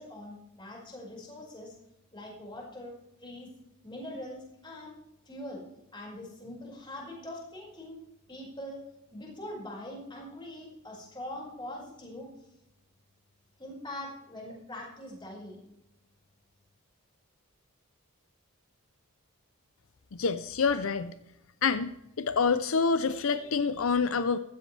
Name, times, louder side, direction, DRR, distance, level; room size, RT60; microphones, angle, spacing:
voice 1, 0.0-1.7 2.1-2.9 3.2-3.5 3.8-4.9 5.2-5.6 5.9-8.0 8.3-8.8 9.1-12.3 13.6-15.6, left 1 dB, 20° left, -3 dB, 5.2 m, -42 dB
voice 2, 20.1-21.1 21.6-21.9 22.2-24.4, left 5 dB, 65° left, 12 dB, 0.5 m, -27 dB
16.0 x 13.0 x 3.3 m, 0.86 s
head